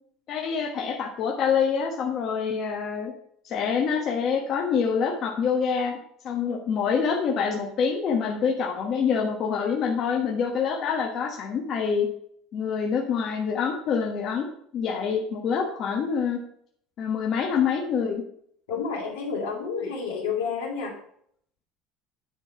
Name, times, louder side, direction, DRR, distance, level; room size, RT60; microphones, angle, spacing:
voice 1, 0.3-3.1 3.4-6.0 6.2-12.1 12.5-14.5 14.7-16.4 17.0-18.2, left 6 dB, 50° left, 0 dB, 1.1 m, -26 dB
voice 2, 18.7-21.0, left 5 dB, 85° left, -2 dB, 2.1 m, -30 dB
9.7 x 4.0 x 4.7 m, 0.67 s
hypercardioid pair, 75°, 0 cm